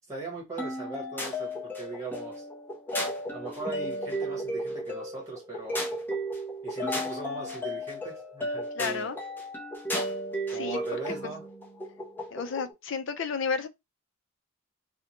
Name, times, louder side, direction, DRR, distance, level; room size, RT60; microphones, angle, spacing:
voice 1, 0.1-2.4 3.3-5.8 6.6-9.1 10.5-11.5, right 3 dB, 15° right, 1.0 m, -39 dB
sound 1, 0.6-12.7, equal, 10° left, 0.5 m, -34 dB
voice 2, 8.8-9.2 10.5-11.3 12.3-13.7, left 5 dB, 65° left, 0.4 m, -32 dB
2.6 x 2.1 x 2.9 m
head